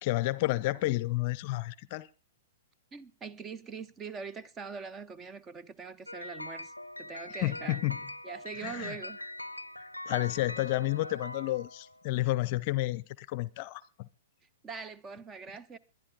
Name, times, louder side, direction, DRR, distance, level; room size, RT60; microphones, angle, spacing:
voice 1, 0.0-2.1 7.4-8.0 8.6-9.0 10.1-13.8, left 18 dB, 40° left, 0.6 m, -30 dB
voice 2, 2.9-6.7 7.0-7.8 8.2-9.2 14.6-15.8, right 5 dB, 20° right, 0.9 m, -42 dB
The Entertainer Clockwork Chime Version, 6.1-12.1, left 1 dB, 90° left, 0.6 m, -42 dB
22.0 x 11.0 x 3.8 m
figure-of-eight pair, 110°, 0 cm